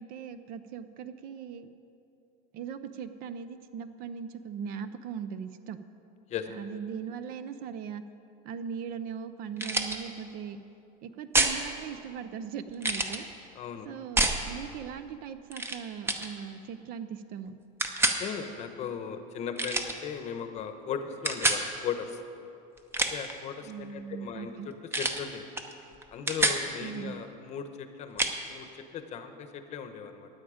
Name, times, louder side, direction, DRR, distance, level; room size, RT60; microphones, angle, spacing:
voice 1, 0.0-1.7 2.5-5.8 6.5-8.0 8.4-10.6 11.0-13.3 13.8-17.5 23.7-24.7 26.8-27.1, right 7 dB, 50° right, 12 dB, 0.6 m, -39 dB
sound 1, 9.6-10.0 11.3-11.6 12.8-13.2 14.2-14.4 15.5-15.8 16.1-16.3 17.8-18.2 19.6-19.9 21.2-21.6 22.8-23.3 24.9-25.2 25.6-25.7 26.0-26.6 28.2-28.3, right 2 dB, 10° right, 0.7 m, -27 dB
voice 2, 13.5-13.9 18.2-22.2 23.1-25.5 26.1-30.3, left 7 dB, 35° left, 8 dB, 0.9 m, -37 dB
16.0 x 10.0 x 5.0 m, 2.7 s
cardioid pair, 160°, 20 cm